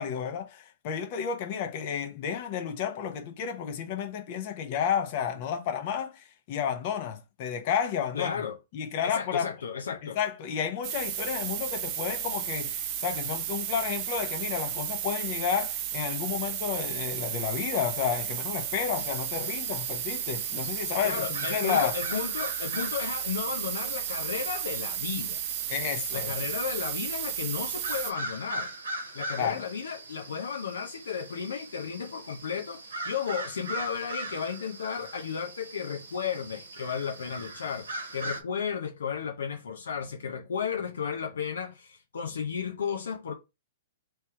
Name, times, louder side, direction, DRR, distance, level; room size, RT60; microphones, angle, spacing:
voice 1, 0.0-8.4 8.7-9.5 10.0-21.9 25.7-26.3 29.4-29.6, left 8 dB, 50° left, 1.0 m, -31 dB
voice 2, 8.1-8.6 9.0-10.2 21.0-25.4 26.1-28.7 29.1-43.3, left 7 dB, 75° left, 0.6 m, -34 dB
sound 1, 10.8-28.1, right 10 dB, 40° right, 0.6 m, -33 dB
sound 2, 19.0-38.4, right 2 dB, 80° right, 1.3 m, -41 dB
3.3 x 3.1 x 4.5 m
hypercardioid pair, 115°, 0 cm